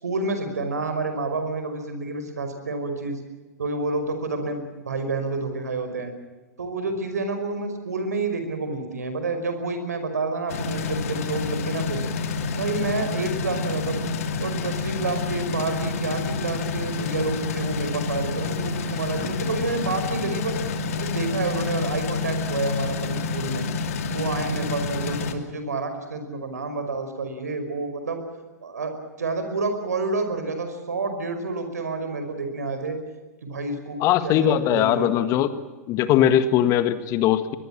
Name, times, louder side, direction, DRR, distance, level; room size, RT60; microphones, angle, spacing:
voice 1, 0.0-3.2 3.6-6.1 6.6-12.0 12.6-14.0 14.4-20.6 21.0-23.6 24.1-28.2 28.6-28.9 29.2-33.0 33.4-35.4, right 3 dB, 75° right, 8 dB, 5.4 m, -29 dB
sound 1, 10.5-25.3, left 4 dB, 60° left, 2.6 m, -28 dB
voice 2, 34.0-35.6 35.9-37.5, left 11 dB, 35° left, 12 dB, 1.7 m, -20 dB
23.0 x 22.5 x 7.5 m, 1.2 s
figure-of-eight pair, 100°, 9 cm